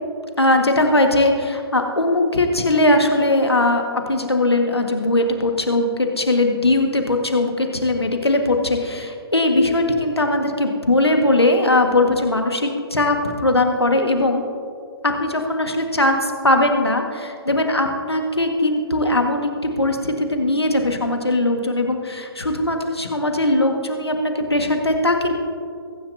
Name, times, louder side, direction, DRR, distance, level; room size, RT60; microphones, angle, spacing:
voice 1, 0.4-14.4 15.0-25.3, left 2 dB, 80° left, 4 dB, 1.7 m, -20 dB
23.0 x 10.0 x 2.7 m, 2.4 s
figure-of-eight pair, 130°, 13 cm